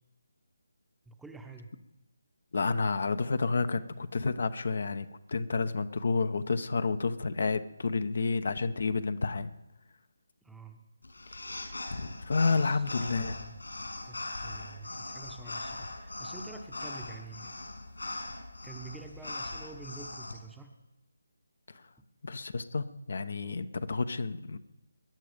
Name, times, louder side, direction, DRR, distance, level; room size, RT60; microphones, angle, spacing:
voice 1, 1.1-1.7 10.4-10.8 12.5-13.6 14.0-17.5 18.6-20.7 22.0-22.1, right 3 dB, 5° right, 4 dB, 0.9 m, -48 dB
voice 2, 2.5-9.5 11.3-11.4 12.2-13.4 22.2-24.6, left 4 dB, 55° left, 11 dB, 0.9 m, -30 dB
sound 1, 11.0-20.3, left 2 dB, 75° left, 6.2 m, -40 dB
21.5 x 10.5 x 5.2 m, 0.98 s
figure-of-eight pair, 155°, 0 cm